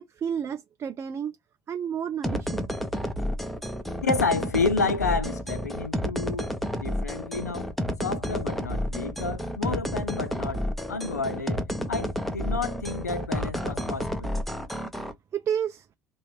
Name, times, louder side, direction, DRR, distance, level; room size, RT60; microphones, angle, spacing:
voice 1, 0.0-1.4 1.7-2.7 15.3-15.9, right 8 dB, 30° right, 0.4 m, -31 dB
sound 1, 2.2-15.1, equal, ahead, 0.7 m, -30 dB
voice 2, 4.0-7.7 8.0-14.3, left 4 dB, 90° left, 0.4 m, -30 dB
3.0 x 2.6 x 3.2 m
figure-of-eight pair, 65°, 9 cm